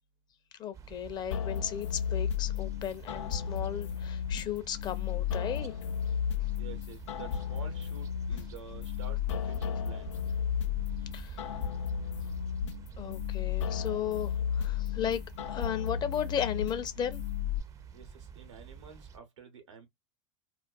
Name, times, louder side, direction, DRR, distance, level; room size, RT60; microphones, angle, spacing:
voice 1, 0.6-5.7 11.1-11.5 13.0-15.2 15.5-17.2, left 9 dB, 30° left, 0.5 m, -35 dB
sound 1, 0.7-19.2, right 6 dB, 20° right, 0.4 m, -49 dB
sound 2, 1.3-17.6, left 8 dB, 80° left, 0.4 m, -34 dB
voice 2, 6.6-10.1 17.9-19.9, right 7 dB, 90° right, 0.9 m, -49 dB
2.4 x 2.2 x 2.3 m
hypercardioid pair, 110°, 15 cm